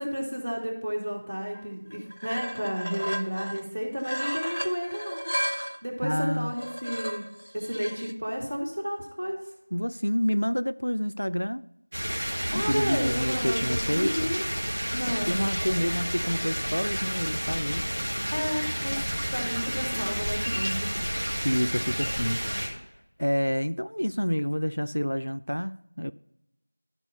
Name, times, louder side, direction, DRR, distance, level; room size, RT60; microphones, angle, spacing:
voice 1, 0.0-5.3 5.8-7.2 7.5-9.4 12.5-14.4 14.9-15.6 18.3-19.0 19.3-21.5, equal, 5° right, 1.8 m, -32 dB
sound 1, 1.5-1.6 1.9-3.7 4.0-5.8 6.5-8.1, equal, 75° right, 0.6 m, -34 dB
voice 2, 6.0-6.5 9.7-11.7 12.5-14.3 15.3-17.9 21.4-22.4 23.2-26.1, equal, 80° left, 0.3 m, -28 dB
sound 2, 11.9-22.7, equal, 35° right, 2.0 m, -30 dB
12.5 x 4.6 x 5.5 m
figure-of-eight pair, 175°, 0 cm